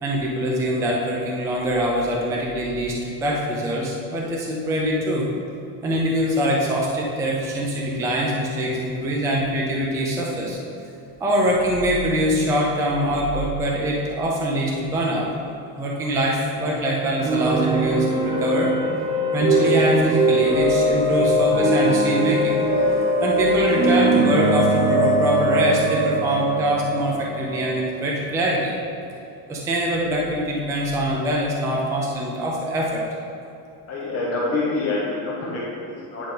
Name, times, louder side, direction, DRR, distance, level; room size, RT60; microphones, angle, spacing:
voice 1, 0.0-5.3 5.8-10.6 11.2-15.3 15.8-18.7 19.3-22.6 22.9-28.7 29.5-33.0, equal, 5° right, -3 dB, 0.4 m, -23 dB
sound 1, 17.2-28.8, right 1 dB, 40° right, 0.9 m, -21 dB
voice 2, 33.9-36.3, left 2 dB, 30° left, -6 dB, 1.1 m, -26 dB
9.8 x 5.1 x 3.8 m, 2.8 s
cardioid pair, 175°, 45 cm